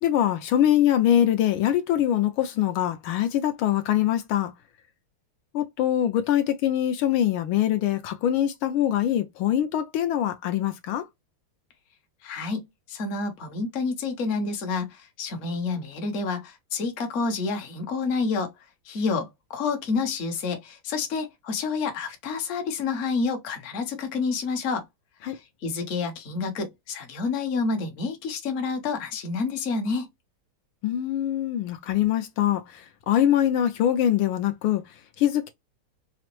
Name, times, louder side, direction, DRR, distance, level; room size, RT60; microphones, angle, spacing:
voice 1, 0.0-4.5 5.5-11.1 25.2-25.4 30.8-35.5, left 11 dB, 75° left, 1.4 m, -23 dB
voice 2, 12.2-18.5 18.8-24.9 25.2-30.1, left 4 dB, 50° left, 1.0 m, -29 dB
4.9 x 2.1 x 2.9 m
omnidirectional pair, 2.4 m